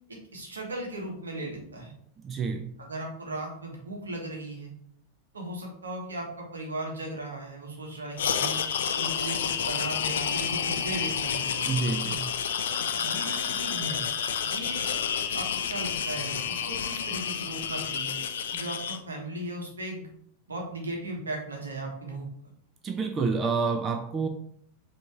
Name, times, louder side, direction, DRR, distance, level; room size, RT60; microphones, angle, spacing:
voice 1, 0.1-1.9 2.8-4.7 5.3-8.6 8.9-11.7 12.7-14.0 14.4-14.9 15.3-18.1 18.5-20.1 20.5-22.3, right 2 dB, 75° right, 0 dB, 1.2 m, -37 dB
voice 2, 2.2-2.8 11.7-12.3 22.8-24.3, right 4 dB, 25° right, 6 dB, 0.4 m, -28 dB
sound 1, 8.2-19.0, left 7 dB, 60° left, 0.4 m, -30 dB
5.2 x 2.9 x 3.5 m, 0.66 s
figure-of-eight pair, 90°, 0 cm